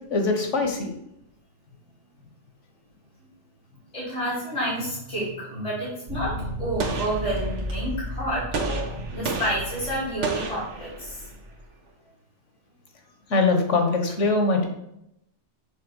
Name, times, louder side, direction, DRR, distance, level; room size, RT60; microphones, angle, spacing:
voice 1, 0.1-0.9 13.3-14.7, left 3 dB, 90° left, 4 dB, 1.6 m, -22 dB
voice 2, 3.9-11.1, right 1 dB, 50° left, -8 dB, 3.4 m, -29 dB
sound 1, 6.1-11.6, equal, 45° right, 2.0 m, -34 dB
Gunshot gunfire, 6.8-7.9 8.5-11.3, right 3 dB, 85° right, 1.4 m, -33 dB
7.7 x 3.6 x 6.2 m, 0.79 s
omnidirectional pair, 1.2 m